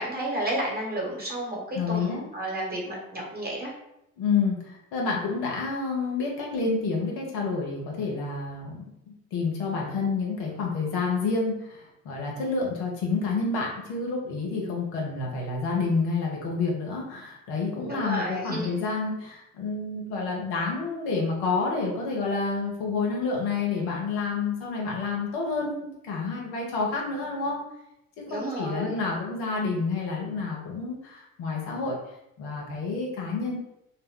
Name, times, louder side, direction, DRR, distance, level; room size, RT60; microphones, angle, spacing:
voice 1, 0.0-3.7 17.8-18.9 28.3-29.1, right 1 dB, 25° right, -3 dB, 1.2 m, -32 dB
voice 2, 1.7-2.2 4.2-27.6 28.2-32.0 32.4-33.6, left 4 dB, 75° left, -1 dB, 0.9 m, -29 dB
2.2 x 2.1 x 3.6 m, 0.83 s
hypercardioid pair, 60°, 38 cm